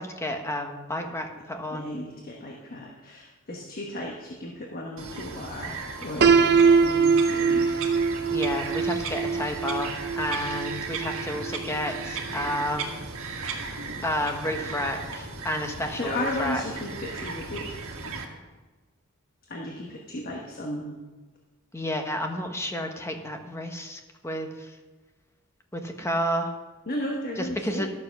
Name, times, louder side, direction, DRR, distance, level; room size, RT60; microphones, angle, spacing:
voice 1, 0.0-1.9 8.3-13.0 14.0-16.6 21.7-24.7 25.7-26.5 27.6-27.9, equal, 15° left, 4 dB, 1.2 m, -31 dB
voice 2, 1.7-7.7 15.7-18.0 19.5-21.0 26.9-27.9, left 1 dB, 45° left, 0 dB, 1.2 m, -35 dB
Bird vocalization bird call bird song, 5.0-18.2, right 4 dB, 65° right, 1.7 m, -36 dB
Piano, 6.2-12.1, right 5 dB, 50° right, 0.6 m, -23 dB
12.5 x 7.0 x 5.9 m, 1.3 s
head